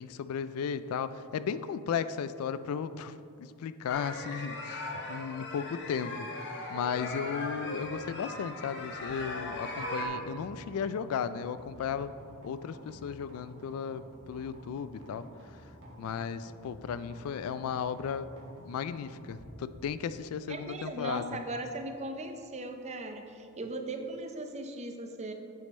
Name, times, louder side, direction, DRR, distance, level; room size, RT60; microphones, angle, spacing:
voice 1, 0.0-12.1 12.4-15.2 16.0-18.3 18.6-21.4, left 7 dB, 70° left, 14 dB, 0.3 m, -35 dB
sound 1, 3.9-10.1, left 2 dB, 55° left, 1.0 m, -38 dB
sound 2, 6.8-24.0, equal, 60° right, 1.4 m, -53 dB
voice 2, 20.5-25.3, right 2 dB, 30° right, 5 dB, 0.6 m, -38 dB
8.2 x 5.2 x 4.2 m, 2.6 s
head